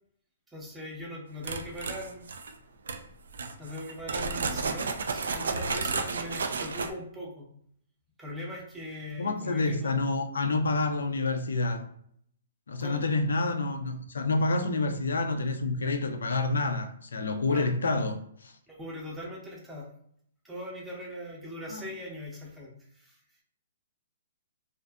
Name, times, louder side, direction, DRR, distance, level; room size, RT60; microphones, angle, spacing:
voice 1, 0.5-2.2 3.6-7.5 8.2-10.0 12.8-13.0 17.5-17.7 18.7-19.9 20.4-23.2, equal, 10° right, -3 dB, 0.7 m, -40 dB
sound 1, 1.4-2.5 2.9-3.0 3.3-6.9, right 4 dB, 80° right, 0.3 m, -32 dB
voice 2, 9.2-11.8 12.7-18.5 21.7-21.8, left 3 dB, 85° left, 5 dB, 0.4 m, -28 dB
2.5 x 2.5 x 2.2 m, 0.66 s
hypercardioid pair, 145°, 0 cm